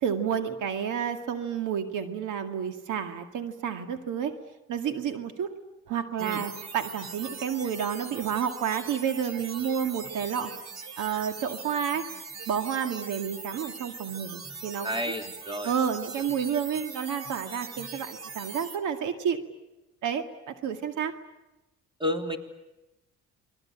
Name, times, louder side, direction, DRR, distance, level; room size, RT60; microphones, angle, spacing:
voice 1, 0.0-4.3 4.7-5.5 5.9-10.5 11.0-12.0 12.5-14.9 15.6-19.4 20.0-21.1, right 8 dB, 80° right, 7 dB, 2.1 m, -30 dB
sound 1, 6.2-18.8, right 5 dB, 60° right, 3.0 m, -41 dB
voice 2, 14.8-15.7 22.0-22.4, left 1 dB, 15° right, 5 dB, 3.2 m, -31 dB
28.5 x 22.0 x 8.8 m, 0.98 s
cardioid pair, 90°, 30 cm